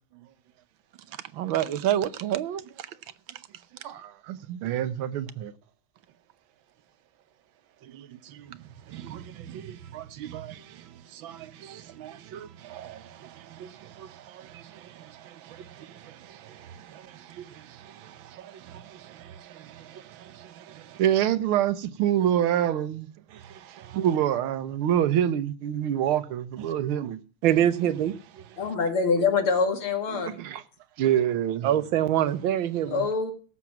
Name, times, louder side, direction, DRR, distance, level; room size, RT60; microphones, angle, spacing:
voice 1, 1.3-2.9 3.3-3.4 7.8-8.6 8.9-10.8 11.1-21.0 23.3-24.0 27.4-28.4 31.6-33.0, right 11 dB, 75° right, 1.5 m, -31 dB
voice 2, 3.8-5.5 21.0-23.1 23.9-27.2 30.1-30.6 31.0-31.7, right 10 dB, 90° right, 1.8 m, -26 dB
voice 3, 28.6-30.4 32.9-33.3, left 5 dB, 90° left, 2.9 m, -25 dB
17.0 x 7.4 x 5.9 m
omnidirectional pair, 2.3 m